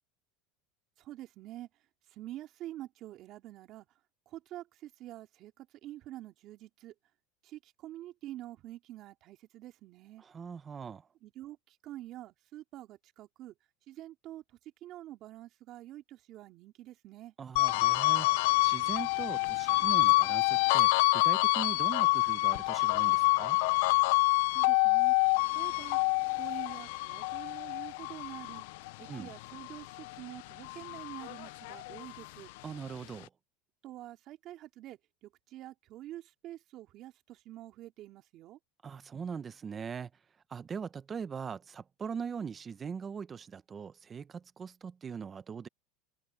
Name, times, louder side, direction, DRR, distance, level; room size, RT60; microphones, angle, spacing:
voice 1, 1.0-1.7 2.1-3.9 4.3-6.9 7.4-10.2 11.2-13.5 13.9-17.3 24.5-26.0 26.3-28.6 29.0-32.5 33.8-38.6, right 14 dB, 45° right, 2.9 m, -47 dB
voice 2, 10.2-11.0 17.4-18.3 18.6-23.6 29.1-29.3 32.6-33.3 38.8-40.1 40.5-45.7, right 6 dB, 20° right, 0.8 m, -41 dB
sound 1, 17.6-30.2 30.6-32.3, left 23 dB, 70° left, 0.5 m, -27 dB
supercardioid pair, 140°, 0 cm